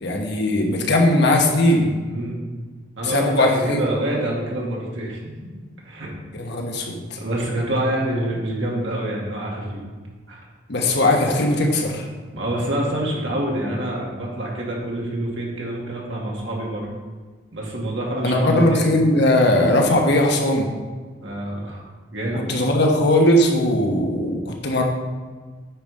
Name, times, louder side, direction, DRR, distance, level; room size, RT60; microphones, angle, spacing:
voice 1, 0.0-1.9 3.0-3.8 6.3-7.0 10.7-12.1 18.2-20.7 22.3-24.8, left 1 dB, 60° left, 1 dB, 1.2 m, -19 dB
voice 2, 2.1-2.4 3.0-5.5 5.8-6.1 7.2-9.8 10.3-10.4 10.7-10.9 12.3-16.9 17.5-18.8 21.2-21.8 22.1-22.5, right 1 dB, 70° right, -3 dB, 2.1 m, -26 dB
8.9 x 4.3 x 5.1 m, 1.4 s
head